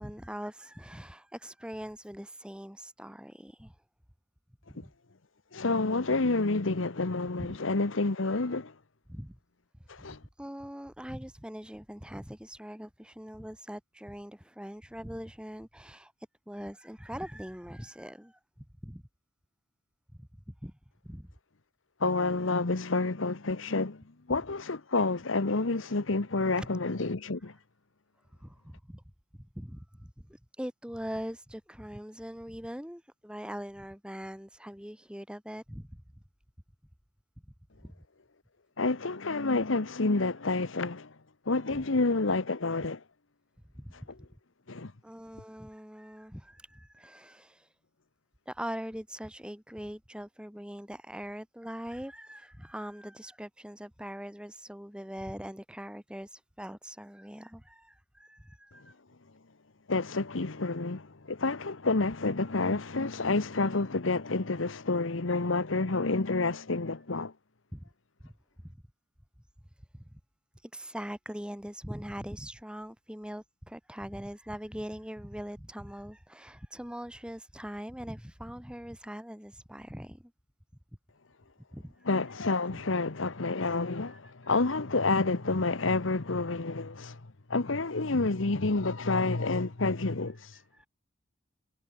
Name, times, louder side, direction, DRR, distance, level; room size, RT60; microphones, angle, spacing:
voice 1, 0.0-3.8 4.7-4.9 7.4-7.6 9.1-9.4 9.8-16.1 16.5-18.4 18.8-19.0 20.2-20.7 21.0-21.3 24.3-24.4 26.6-26.7 27.4-27.5 28.4-29.0 29.4-35.9 37.8-38.0 41.8-41.9 43.8-43.9 45.0-47.8 48.5-58.9 67.7-67.8 68.2-68.3 68.6-68.8 69.9-70.2 70.5-80.3 81.7-82.1 82.7-82.8 84.1-84.2 90.5-90.9, equal, 5° right, 2.7 m, -42 dB
voice 2, 5.5-8.7 9.9-10.2 22.0-27.5 38.8-41.1 41.4-43.0 44.7-44.9 59.9-67.3 82.0-90.6, left 3 dB, 85° left, 1.2 m, -29 dB
head